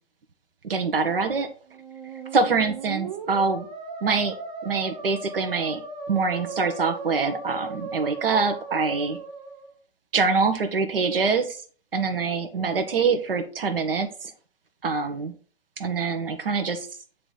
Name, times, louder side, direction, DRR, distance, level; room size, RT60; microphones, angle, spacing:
voice 1, 0.6-1.5 2.3-3.7 4.0-4.3 4.6-9.2 10.1-11.6 11.9-14.3 14.8-15.3 15.8-16.9, right 4 dB, 55° right, 7 dB, 1.1 m, -25 dB
Musical instrument, 1.7-9.7, right 4 dB, 40° right, 1.7 m, -37 dB
8.3 x 3.6 x 4.0 m, 0.41 s
figure-of-eight pair, 130°, 33 cm